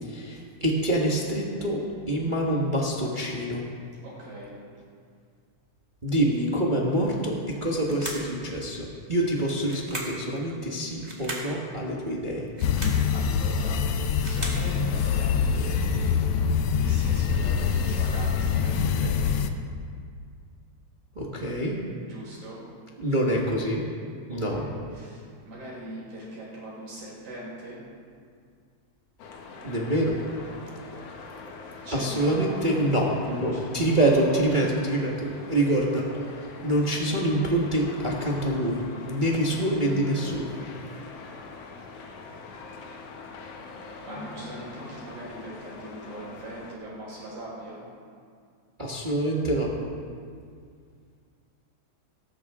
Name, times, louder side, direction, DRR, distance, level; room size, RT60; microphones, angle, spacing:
voice 1, 0.0-1.8 2.1-3.6 6.0-12.5 21.1-21.7 23.0-23.8 24.3-24.6 29.6-30.2 31.9-36.1 36.3-40.5 48.8-49.7, right 1 dB, 35° right, -3 dB, 0.7 m, -26 dB
voice 2, 4.0-4.5 13.1-13.8 14.2-16.1 16.8-19.4 22.0-22.6 24.3-27.8 31.8-32.7 33.5-33.6 42.3-42.7 44.0-47.8, right 1 dB, 75° right, -6 dB, 6.3 m, -41 dB
sound 1, 7.8-8.3 9.6-10.2 11.0-11.5 12.5-13.0 13.9-14.7, right 1 dB, 15° right, 1.6 m, -36 dB
sound 2, 12.6-19.5, left 6 dB, 80° left, 1.3 m, -24 dB
sound 3, 29.2-46.8, left 4 dB, 60° left, 1.9 m, -43 dB
17.5 x 14.5 x 3.7 m, 2.2 s
omnidirectional pair, 3.5 m